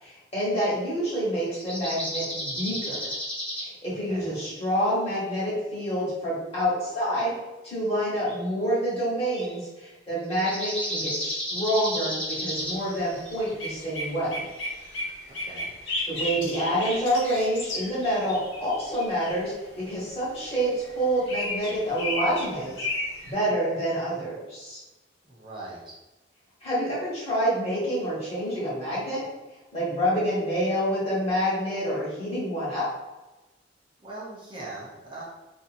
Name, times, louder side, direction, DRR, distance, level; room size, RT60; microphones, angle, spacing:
voice 1, 0.0-3.1 3.6-7.3 7.6-14.4 16.1-22.7 23.3-24.8 26.6-29.2 29.7-32.8, equal, 35° left, -8 dB, 1.3 m, -27 dB
sound 1, 1.4-3.7 8.1-8.4 9.3-9.5 10.3-13.5 14.6-14.7, equal, 10° left, 0.7 m, -32 dB
voice 2, 3.9-4.3 15.4-15.7 25.2-26.0 34.0-35.2, right 2 dB, 25° right, -6 dB, 0.6 m, -41 dB
sound 2, 12.8-19.5 20.4-23.3, left 2 dB, 80° left, 0.9 m, -34 dB
2.8 x 2.6 x 2.5 m, 1.1 s
head